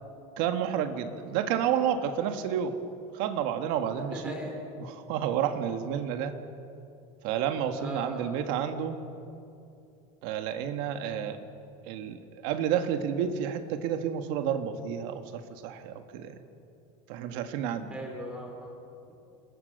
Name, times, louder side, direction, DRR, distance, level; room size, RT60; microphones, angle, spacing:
voice 1, 0.4-2.8 3.1-4.4 4.8-6.3 7.2-9.0 10.2-11.4 11.9-12.2 12.4-16.3 17.1-18.0, right 9 dB, 60° right, 7 dB, 1.7 m, -30 dB
voice 2, 3.9-4.6 7.8-8.3 17.9-18.7, equal, 5° right, 2 dB, 3.9 m, -39 dB
28.5 x 21.5 x 6.6 m, 2.6 s
cardioid pair, 160°, 16 cm